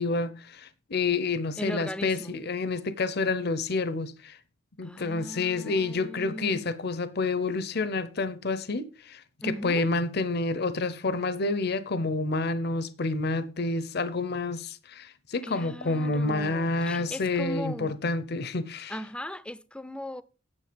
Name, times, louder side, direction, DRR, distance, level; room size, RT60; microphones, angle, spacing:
voice 1, 0.0-4.4 4.8-18.9, left 3 dB, 55° left, 0.8 m, -29 dB
voice 2, 1.6-2.3 4.8-6.7 9.4-9.9 15.4-17.9 18.9-20.2, equal, 5° left, 0.5 m, -38 dB
9.8 x 7.2 x 5.2 m
head